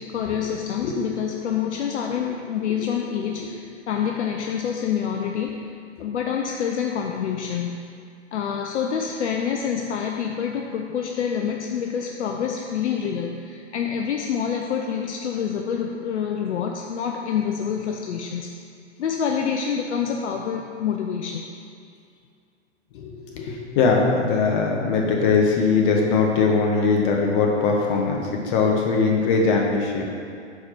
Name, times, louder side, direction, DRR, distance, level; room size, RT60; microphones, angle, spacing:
voice 1, 0.0-5.7 6.0-7.9 8.3-18.5 19.0-21.5, left 7 dB, 70° left, 2 dB, 0.5 m, -27 dB
voice 2, 22.9-30.0, left 4 dB, 45° left, 0 dB, 1.1 m, -21 dB
4.5 x 4.3 x 5.7 m, 2.4 s
figure-of-eight pair, 100°, 36 cm